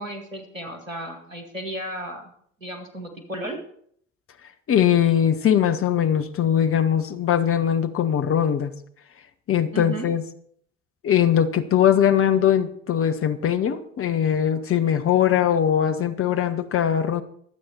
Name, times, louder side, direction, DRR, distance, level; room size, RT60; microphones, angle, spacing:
voice 1, 0.0-2.3 2.6-3.6 9.7-10.1, right 1 dB, 90° right, 5 dB, 2.1 m, -34 dB
voice 2, 4.7-8.7 9.5-10.2 11.0-17.2, left 9 dB, 35° left, 9 dB, 1.3 m, -21 dB
24.0 x 8.5 x 4.4 m, 0.64 s
figure-of-eight pair, 60°, 38 cm